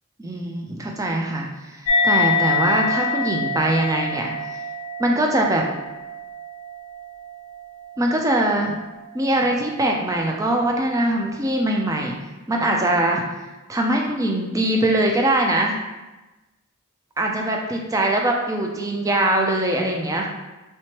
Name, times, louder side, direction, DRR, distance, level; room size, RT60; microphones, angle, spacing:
voice 1, 0.2-4.6 5.0-5.7 8.0-8.7 9.1-12.2 12.5-13.2 13.7-15.8 17.2-20.3, right 1 dB, 15° right, 1 dB, 0.3 m, -22 dB
sound 1, 1.9-8.8, left 4 dB, 75° left, 0.4 m, -26 dB
3.2 x 3.0 x 2.9 m, 1.1 s
head